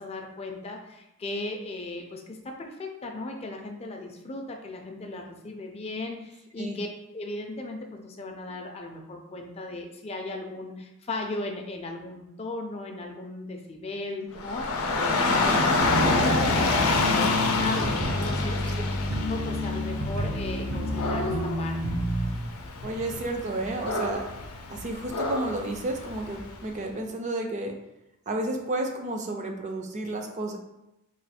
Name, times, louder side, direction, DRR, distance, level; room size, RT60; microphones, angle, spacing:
voice 1, 0.0-6.9 7.1-18.8 19.2-22.0, left 2 dB, 30° left, 3 dB, 0.4 m, -37 dB
Dog / Rain, 14.4-26.5, left 3 dB, 80° left, 0.5 m, -27 dB
sound 1, 15.8-22.3, left 1 dB, 75° right, 0.6 m, -30 dB
voice 2, 22.8-24.2 24.7-27.7 28.3-30.6, right 2 dB, 35° right, 3 dB, 0.4 m, -31 dB
3.1 x 2.3 x 4.2 m, 0.91 s
head